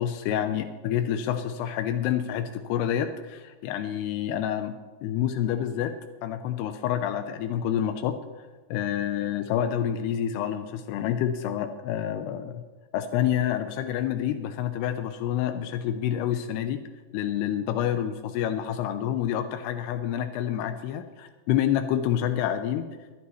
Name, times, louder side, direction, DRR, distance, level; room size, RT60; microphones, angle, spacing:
voice 1, 0.0-4.7 5.0-5.9 6.2-8.2 8.7-12.6 12.9-16.8 17.1-22.9, left 10 dB, 90° left, 8 dB, 2.3 m, -28 dB
21.0 x 11.0 x 3.1 m, 1.3 s
omnidirectional pair, 5.4 m